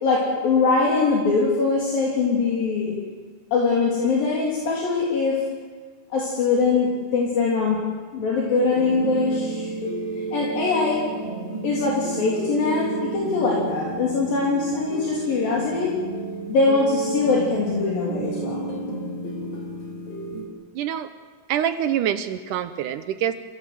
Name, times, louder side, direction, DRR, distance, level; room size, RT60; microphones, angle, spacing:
voice 1, 0.0-2.9 3.5-5.4 6.1-7.8 8.1-9.7 10.3-11.0 11.6-15.9 16.5-18.7, left 4 dB, 65° left, -4 dB, 4.9 m, -22 dB
sound 1, 8.6-20.5, right 3 dB, 40° left, 4.7 m, -32 dB
voice 2, 20.7-21.1 21.5-23.3, right 10 dB, 75° right, 10 dB, 2.0 m, -25 dB
28.5 x 17.0 x 7.7 m, 1.5 s
omnidirectional pair, 4.5 m